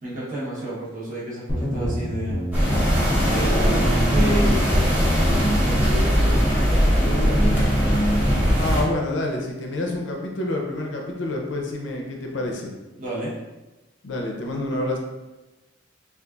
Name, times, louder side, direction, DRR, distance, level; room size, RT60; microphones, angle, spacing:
voice 1, 0.0-2.4 3.2-7.6 13.0-13.3, right 1 dB, 45° right, -8 dB, 0.9 m, -31 dB
sound 1, 1.5-8.9, equal, 15° left, 0.4 m, -25 dB
sound 2, 2.5-8.8, equal, 10° right, 0.8 m, -21 dB
voice 2, 8.6-12.7 14.0-15.0, left 2 dB, 70° left, 1 dB, 0.5 m, -28 dB
3.8 x 2.4 x 2.3 m, 1.1 s
head